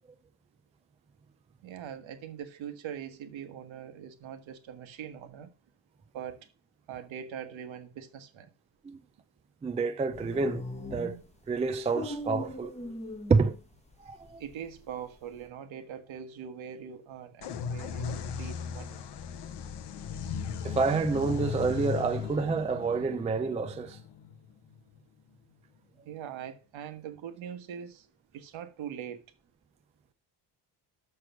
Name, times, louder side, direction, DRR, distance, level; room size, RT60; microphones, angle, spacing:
voice 1, 1.6-5.5 6.1-6.5 6.9-8.5 14.4-19.0 26.0-28.1 28.3-29.2, right 8 dB, 65° right, 1.4 m, -42 dB
voice 2, 9.6-10.6 10.9-11.2 11.5-12.7 13.3-13.6 14.0-14.4 20.6-24.0, right 4 dB, 15° right, 0.3 m, -28 dB
sound 1, 10.1-13.9 14.3-15.5, left 1 dB, 15° left, 1.1 m, -40 dB
sound 2, 17.4-25.0, left 7 dB, 55° left, 0.9 m, -37 dB
6.7 x 6.1 x 5.8 m
cardioid pair, 165°, 50 cm